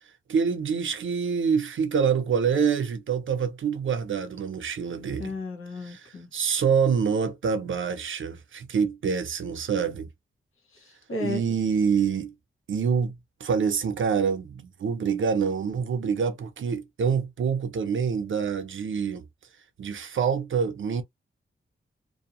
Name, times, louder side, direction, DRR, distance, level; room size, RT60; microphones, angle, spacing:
voice 1, 0.3-5.3 5.8-10.1 11.2-12.3 12.7-19.2 19.8-21.0, right 6 dB, 70° right, 0.6 m, -26 dB
voice 2, 5.2-6.3 10.7-11.4, left 3 dB, 85° left, 1.3 m, -34 dB
2.6 x 2.2 x 2.8 m
wide cardioid pair, 160°, 21 cm